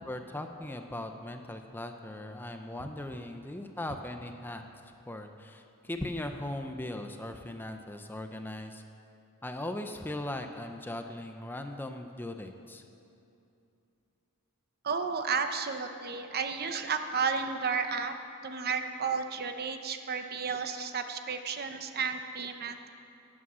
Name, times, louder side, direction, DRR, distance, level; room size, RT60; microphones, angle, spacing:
voice 1, 0.0-4.6 5.1-8.8 9.4-12.8, left 1 dB, 10° left, 6 dB, 0.6 m, -39 dB
voice 2, 14.8-18.1 18.4-22.9, right 5 dB, 45° right, 7 dB, 0.8 m, -32 dB
16.5 x 8.7 x 6.2 m, 2.7 s
head